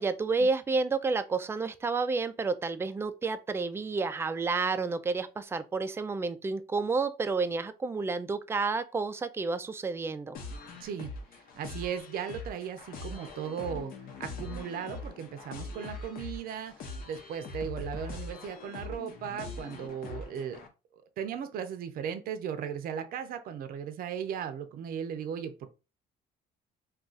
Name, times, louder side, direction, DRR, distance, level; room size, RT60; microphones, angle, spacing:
voice 1, 0.0-10.4, right 4 dB, 15° right, 0.3 m, -30 dB
sound 1, 10.3-20.7, left 3 dB, 60° left, 0.8 m, -42 dB
voice 2, 10.8-11.1 11.5-13.9 14.2-20.6 20.9-25.5, right 8 dB, 60° right, 0.5 m, -37 dB
2.4 x 2.4 x 3.9 m
cardioid pair, 110°, 17 cm